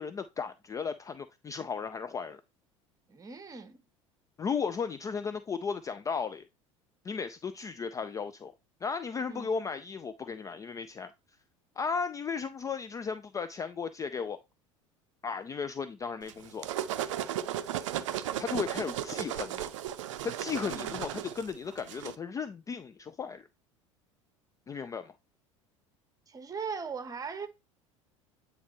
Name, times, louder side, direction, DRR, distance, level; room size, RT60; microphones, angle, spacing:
voice 1, 0.0-2.4 4.4-6.5 7.0-8.5 8.8-11.1 11.8-14.4 15.2-16.7 18.4-19.7 20.2-23.5 24.7-25.1, left 5 dB, 20° left, 0.4 m, -35 dB
voice 2, 3.1-3.8 9.2-9.5 20.6-20.9 26.3-27.5, right 5 dB, 20° right, 1.1 m, -39 dB
sound 1, 16.3-22.2, right 11 dB, 70° right, 0.5 m, -35 dB
9.3 x 3.4 x 3.0 m
figure-of-eight pair, 70°, 17 cm